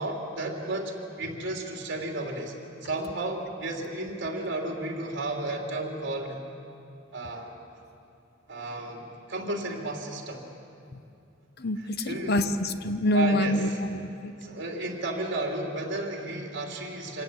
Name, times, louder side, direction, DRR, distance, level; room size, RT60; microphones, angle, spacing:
voice 1, 0.0-2.5 2.8-6.4 7.1-7.5 8.5-10.4 12.0-12.4 13.1-13.6 14.4-17.2, right 2 dB, 65° right, 0 dB, 3.1 m, -33 dB
voice 2, 11.6-14.3, left 1 dB, 55° left, 10 dB, 1.0 m, -27 dB
26.0 x 18.0 x 7.5 m, 2.6 s
head